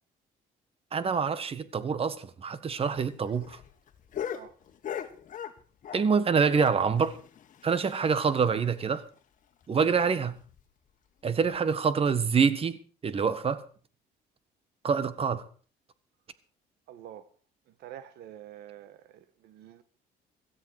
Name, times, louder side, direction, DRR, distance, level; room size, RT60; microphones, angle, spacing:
voice 1, 0.9-3.6 5.9-7.2 7.6-9.0 9.7-10.4 11.2-13.6 14.8-15.4, right 6 dB, 35° right, 1.5 m, -26 dB
sound 1, 2.7-6.2 6.5-8.5 8.8-8.9 9.1-9.2 9.6-9.7 10.3-10.6 11.4-11.6, left 9 dB, 50° left, 1.9 m, -40 dB
voice 2, 16.9-17.3 17.8-19.8, right 11 dB, 75° right, 1.6 m, -47 dB
17.0 x 13.0 x 4.8 m
cardioid pair, 110°, 17 cm